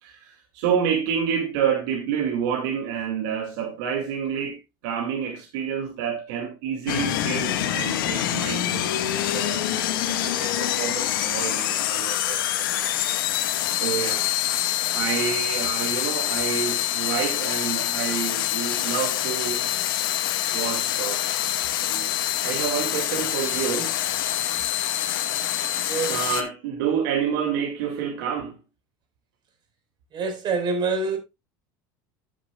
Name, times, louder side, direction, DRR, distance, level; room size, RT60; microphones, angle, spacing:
voice 1, 0.0-12.9 13.7-14.3 14.9-19.7 20.5-21.4 21.7-22.1 22.4-24.0 26.1-28.6, right 8 dB, 75° right, 2.1 m, -29 dB
sound 1, 6.9-26.4, left 12 dB, 85° left, 1.4 m, -26 dB
voice 2, 25.8-26.2 30.1-31.2, right 4 dB, 40° right, 4.5 m, -26 dB
13.0 x 7.5 x 2.3 m
supercardioid pair, 110°, 11 cm